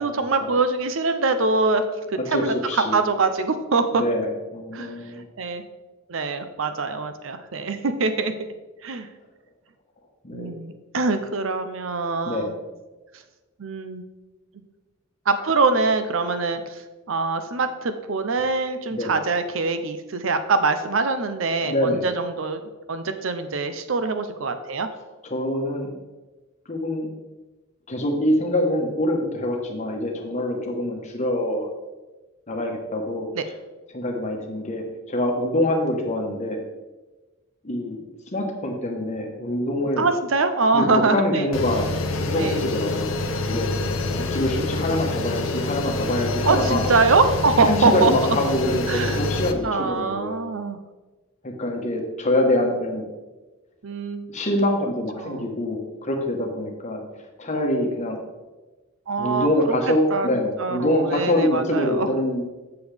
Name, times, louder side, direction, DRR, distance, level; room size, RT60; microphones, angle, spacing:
voice 1, 0.0-2.5 2.9-4.0 4.7-4.9 5.4-5.6 6.1-8.3 8.8-9.1 10.3-12.5 13.6-14.1 15.3-16.8 17.1-22.6 22.9-24.9 33.3-33.4 40.0-41.5 42.4-42.6 46.4-48.4 48.9-49.2 49.6-50.8 53.8-54.3 55.2-55.5 59.1-59.5 60.1-62.1, right 3 dB, 70° right, 9 dB, 0.6 m, -23 dB
voice 2, 2.2-3.0 3.9-5.3 10.2-10.5 12.2-12.5 18.9-19.2 21.6-22.0 25.2-25.9 26.7-27.1 27.9-31.7 32.5-33.3 33.9-36.6 37.6-40.1 40.7-43.2 43.5-43.7 44.2-46.8 47.6-50.5 51.4-53.1 54.3-58.2 59.2-62.5, left 1 dB, 35° left, 1 dB, 1.2 m, -25 dB
sound 1, 41.5-49.5, left 2 dB, 70° left, 0.7 m, -26 dB
8.0 x 6.9 x 3.4 m, 1.2 s
head